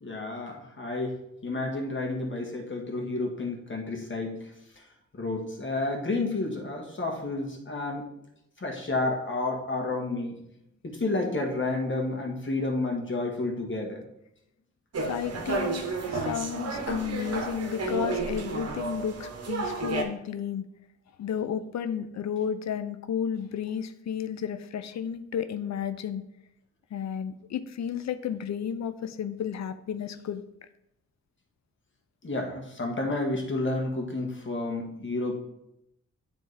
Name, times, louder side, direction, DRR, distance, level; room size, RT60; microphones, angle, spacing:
voice 1, 0.0-4.5 5.1-8.1 8.6-10.3 10.8-14.0 32.2-35.3, left 2 dB, 40° left, 1 dB, 1.7 m, -30 dB
sound 1, 14.9-20.0, right 3 dB, 55° right, 1.1 m, -32 dB
voice 2, 15.1-20.7 21.2-26.2 26.9-30.4, left 8 dB, 65° left, 11 dB, 0.6 m, -32 dB
9.4 x 3.5 x 3.4 m, 0.82 s
cardioid pair, 55°, 29 cm